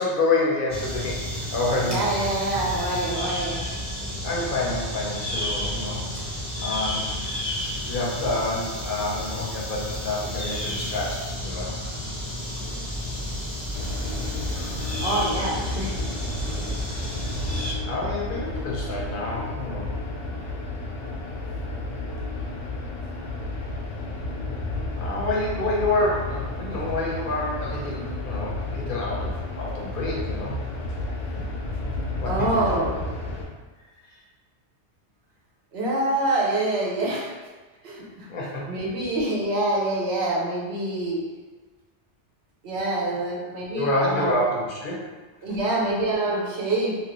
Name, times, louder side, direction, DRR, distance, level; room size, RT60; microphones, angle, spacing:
voice 1, 0.0-2.1 4.2-6.3 6.6-7.1 7.9-11.7 17.8-19.9 25.0-30.5 32.2-32.9 38.3-38.7 43.7-45.0 45.5-45.6, left 2 dB, 55° left, -3 dB, 0.7 m, -28 dB
sound 1, 0.7-17.7, left 1 dB, 20° right, 0.6 m, -31 dB
voice 2, 1.8-3.6 15.0-16.1 32.2-32.9 35.7-37.3 37.8-38.3 38.7-41.2 42.6-44.5 45.4-47.0, right 2 dB, 65° right, -4 dB, 0.9 m, -26 dB
sound 2, 13.7-33.5, left 2 dB, 90° left, 0.9 m, -32 dB
3.0 x 2.4 x 2.9 m, 1.3 s
omnidirectional pair, 1.2 m